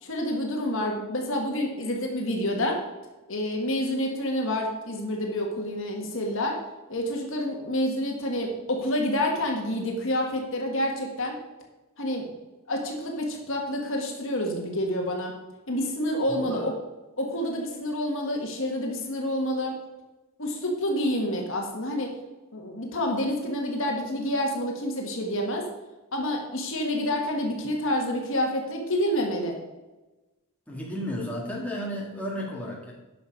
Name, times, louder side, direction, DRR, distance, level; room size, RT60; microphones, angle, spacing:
voice 1, 0.0-2.8 3.3-6.6 6.9-11.4 12.0-12.3 12.7-15.3 15.7-16.7 17.2-19.8 20.4-22.1 22.5-25.6 26.1-29.5, left 1 dB, 60° left, 1 dB, 1.7 m, -28 dB
voice 2, 16.3-16.7 30.7-32.9, left 1 dB, 5° left, -4 dB, 2.1 m, -33 dB
10.0 x 6.0 x 5.3 m, 1.1 s
head